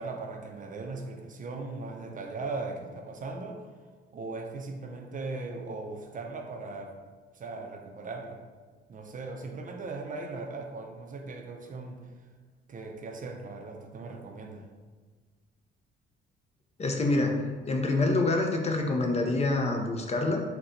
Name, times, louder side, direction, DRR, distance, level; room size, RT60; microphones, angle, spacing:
voice 1, 0.0-3.7 4.1-7.0 7.3-8.4 8.9-12.1 12.7-14.7, right 3 dB, 40° right, 3 dB, 0.5 m, -38 dB
voice 2, 16.8-20.4, left 2 dB, 30° left, 3 dB, 0.5 m, -26 dB
4.1 x 2.2 x 3.8 m, 1.4 s
cardioid pair, 90°, 20 cm